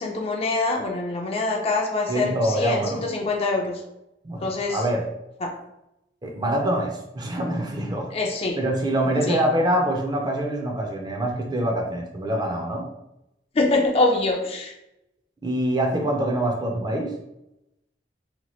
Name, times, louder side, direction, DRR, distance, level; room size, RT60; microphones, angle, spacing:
voice 1, 0.0-3.8 4.4-4.8 5.4-5.5 8.1-8.6 9.2-9.4 13.5-14.7, left 2 dB, 35° left, 1 dB, 0.4 m, -24 dB
voice 2, 2.1-3.1 4.2-5.0 6.2-8.1 8.6-12.9 15.4-17.1, right 1 dB, 25° right, 1 dB, 0.5 m, -25 dB
2.9 x 2.2 x 3.0 m, 0.85 s
head